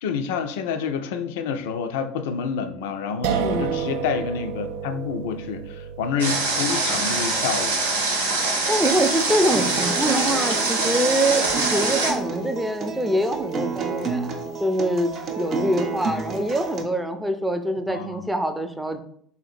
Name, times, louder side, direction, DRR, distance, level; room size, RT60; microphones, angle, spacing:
voice 1, 0.0-7.8 17.9-18.3, left 6 dB, 65° left, 0.4 m, -28 dB
sound 1, 3.2-10.2, right 8 dB, 65° right, 0.3 m, -32 dB
voice 2, 3.4-3.9 8.7-19.0, right 1 dB, 5° right, 0.5 m, -25 dB
Water, 6.2-12.1, right 3 dB, 80° right, 0.7 m, -24 dB
Acoustic guitar, 8.8-16.8, right 4 dB, 45° right, 0.7 m, -30 dB
3.7 x 2.8 x 4.2 m
figure-of-eight pair, 65°, 0 cm